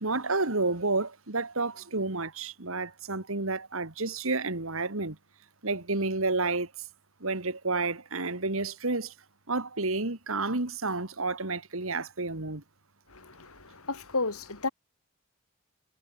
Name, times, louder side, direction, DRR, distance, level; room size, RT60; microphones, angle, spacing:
voice 1, 0.0-5.2 5.6-6.7 7.2-9.1 9.5-12.6, right 3 dB, 70° right, 2.3 m, -30 dB
voice 2, 13.1-14.7, left 3 dB, 85° left, 3.6 m, -33 dB
head